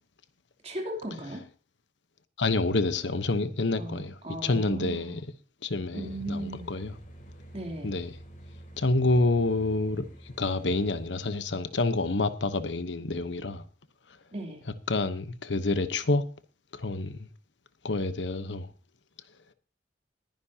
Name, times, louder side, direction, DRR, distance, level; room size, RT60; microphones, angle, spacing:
voice 1, 0.6-1.5 3.8-5.2 5.9-6.7 7.5-7.9 14.3-14.6, right 1 dB, 35° right, 3.1 m, -36 dB
voice 2, 2.4-4.1 4.4-5.2 5.6-6.9 7.8-8.1 8.8-10.1 10.4-13.6 14.9-16.2 16.7-17.3 17.8-18.7, left 2 dB, 80° left, 1.0 m, -28 dB
sound 1, 6.0-11.1, right 1 dB, 45° left, 4.0 m, -48 dB
20.0 x 10.5 x 2.9 m
head